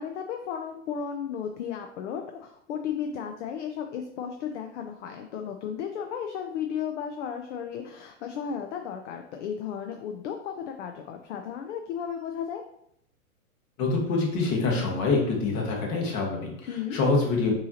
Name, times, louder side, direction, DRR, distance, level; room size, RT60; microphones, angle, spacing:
voice 1, 0.0-12.6 16.7-17.0, left 8 dB, 55° left, 5 dB, 0.5 m, -34 dB
voice 2, 13.8-16.5 16.9-17.5, left 3 dB, 40° left, -1 dB, 1.3 m, -25 dB
5.4 x 2.8 x 2.8 m, 0.74 s
hypercardioid pair, 130°, 43 cm